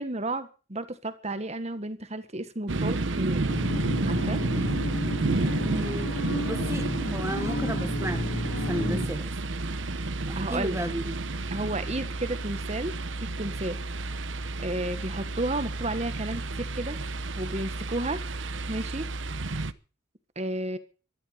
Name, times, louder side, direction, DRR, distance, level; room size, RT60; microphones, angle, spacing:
voice 1, 0.0-3.5 4.1-4.4 8.8-9.1 10.3-10.9 11.5-13.8 14.6-17.0 17.4-18.2 18.7-19.1 20.3-20.8, right 1 dB, 35° right, 1.6 m, -32 dB
sound 1, 2.7-19.7, right 2 dB, 70° right, 1.0 m, -31 dB
sound 2, 3.5-9.1, left 1 dB, 80° left, 3.0 m, -32 dB
voice 2, 5.6-9.3 10.3-11.2, right 1 dB, 15° right, 1.3 m, -34 dB
16.0 x 13.0 x 5.7 m
head